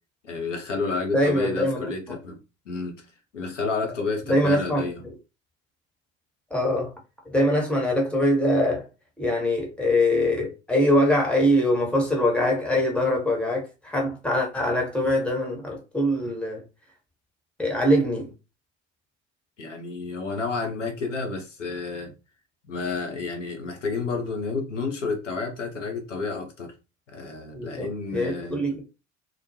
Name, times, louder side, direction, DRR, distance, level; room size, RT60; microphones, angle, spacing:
voice 1, 0.2-2.4 2.7-3.0 3.3-5.0 19.6-22.1 22.7-26.7 27.1-28.6, left 4 dB, 85° left, 0.6 m, -30 dB
voice 2, 1.1-2.2 4.3-5.1 6.5-6.9 7.2-8.9 9.2-16.6 17.6-18.3 27.5-28.8, left 1 dB, 5° left, 0.9 m, -23 dB
2.2 x 2.1 x 2.7 m
figure-of-eight pair, 60°, 36 cm